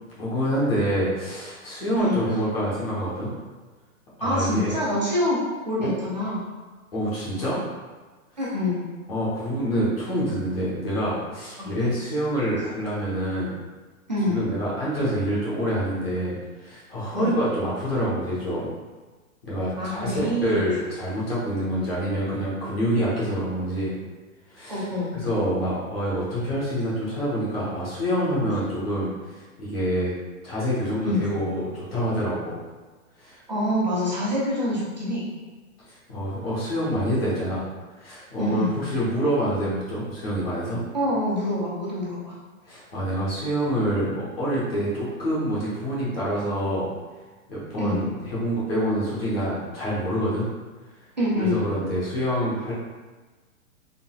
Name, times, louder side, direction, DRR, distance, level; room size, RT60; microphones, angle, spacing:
voice 1, 0.2-3.3 4.2-4.8 5.8-5.9 6.9-7.6 8.3-8.5 9.1-13.5 14.3-18.7 19.4-24.0 24.5-24.9 25.1-30.1 30.4-32.6 33.2-33.4 35.8-37.6 37.9-40.8 42.6-50.5 50.8-51.1 51.3-52.7, equal, 40° left, -8 dB, 1.0 m, -27 dB
voice 2, 4.2-5.4 5.7-6.4 8.4-8.8 11.6-12.0 14.1-14.4 17.2-17.3 19.8-20.6 24.7-25.1 31.0-31.2 33.5-35.2 38.4-38.7 40.9-42.3 47.8-48.0 51.2-51.6, left 1 dB, 30° right, -7 dB, 0.4 m, -26 dB
3.8 x 2.1 x 2.2 m, 1.3 s
hypercardioid pair, 180°, 43 cm